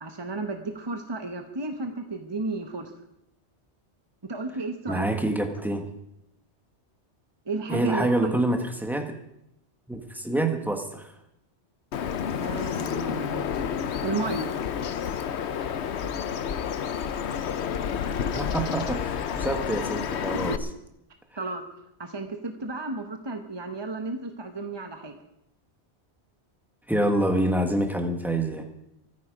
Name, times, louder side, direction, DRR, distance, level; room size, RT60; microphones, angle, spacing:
voice 1, 0.0-2.9 4.2-5.1 7.5-8.4 12.4-14.6 18.3-18.5 21.4-21.6 22.0-25.2, right 3 dB, 25° right, 6 dB, 1.1 m, -33 dB
voice 2, 4.9-5.9 7.7-9.2 9.9-11.1 18.3-20.5 26.9-28.7, right 1 dB, ahead, 5 dB, 1.5 m, -26 dB
Bird vocalization bird call bird song, 11.9-20.6, left 7 dB, 75° left, 1.0 m, -30 dB
24.0 x 9.6 x 5.0 m, 0.82 s
omnidirectional pair, 1.2 m